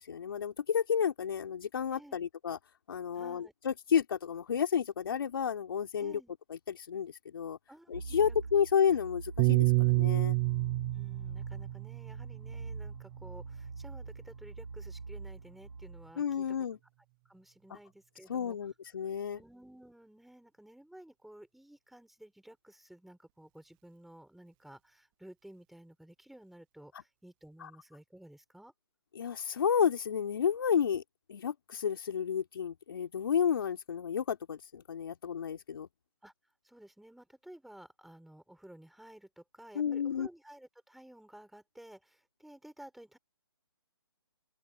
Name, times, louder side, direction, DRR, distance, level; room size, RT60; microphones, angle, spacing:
voice 1, 0.0-2.6 2.9-6.2 6.5-7.6 7.9-10.4 16.2-16.8 18.3-19.4 27.6-27.7 29.2-31.0 31.3-35.9 39.8-40.3, left 7 dB, 60° left, 3.5 m, -31 dB
voice 2, 1.9-2.3 3.1-3.5 6.0-6.3 7.7-8.4 10.9-16.5 17.2-18.6 19.0-28.7 36.2-36.3 36.6-43.2, right 1 dB, ahead, 6.6 m, -54 dB
sound 1, 7.9-16.1, right 4 dB, 80° right, 4.5 m, -43 dB
Piano, 9.4-13.8, right 36 dB, 15° right, 0.3 m, -30 dB
open air
figure-of-eight pair, 145°, 14 cm